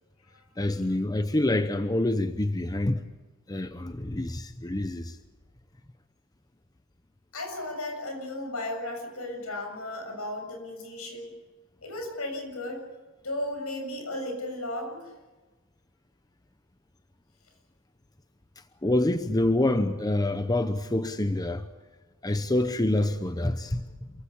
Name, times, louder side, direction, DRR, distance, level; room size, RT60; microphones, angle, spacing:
voice 1, 0.6-3.1 3.5-5.2 18.8-21.7 22.2-24.1, left 1 dB, 15° left, 0.8 m, -26 dB
voice 2, 7.3-11.3 11.8-12.8 13.2-15.1, left 1 dB, 75° left, 7.0 m, -35 dB
28.0 x 16.0 x 8.5 m
head